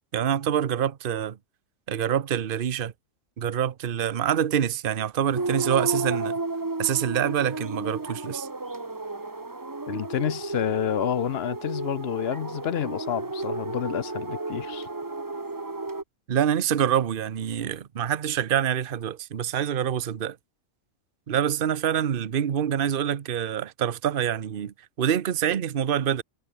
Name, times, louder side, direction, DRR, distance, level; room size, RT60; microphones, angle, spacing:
voice 1, 0.1-1.4 1.9-2.9 3.4-6.4 6.8-8.5 16.3-20.4 21.3-26.2, right 9 dB, 45° right, 1.0 m, -26 dB
sound 1, 5.4-16.0, right 3 dB, 15° right, 0.9 m, -32 dB
voice 2, 9.9-14.9, left 10 dB, 55° left, 0.8 m, -29 dB
omnidirectional pair, 1.4 m